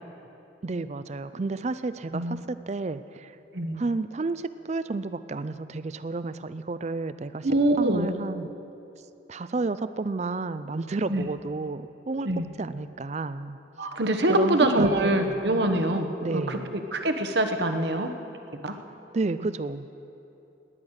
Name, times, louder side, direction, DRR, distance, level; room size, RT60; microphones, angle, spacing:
voice 1, 0.6-3.3 3.8-7.5 7.8-8.5 9.3-12.3 12.6-13.6 14.3-15.4 16.2-16.7 19.1-19.9, right 3 dB, 35° right, 13 dB, 0.4 m, -31 dB
voice 2, 7.4-8.1 11.1-11.2 12.2-12.5 13.8-18.1 18.6-18.8, right 1 dB, 65° right, 6 dB, 1.1 m, -24 dB
18.5 x 10.5 x 6.5 m, 2.9 s
head